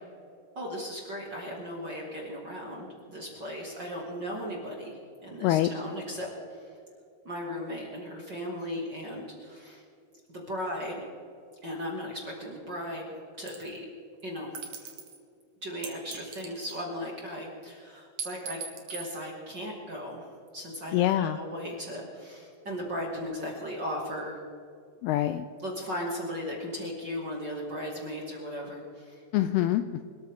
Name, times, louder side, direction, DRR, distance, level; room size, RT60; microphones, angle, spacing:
voice 1, 0.6-6.7 7.2-9.8 10.3-11.0 11.6-13.8 14.2-14.9 15.6-18.6 18.9-24.4 25.6-29.2, equal, 35° right, -2 dB, 2.1 m, -37 dB
sound 1, 13.5-13.8 14.5-15.2 15.8-17.1 18.2-19.2, right 6 dB, 55° right, 1.7 m, -40 dB
voice 2, 20.9-21.4 25.0-25.4 29.3-30.0, left 13 dB, 85° left, 10 dB, 2.3 m, -25 dB
24.5 x 13.5 x 3.7 m, 2.5 s
omnidirectional pair, 5.0 m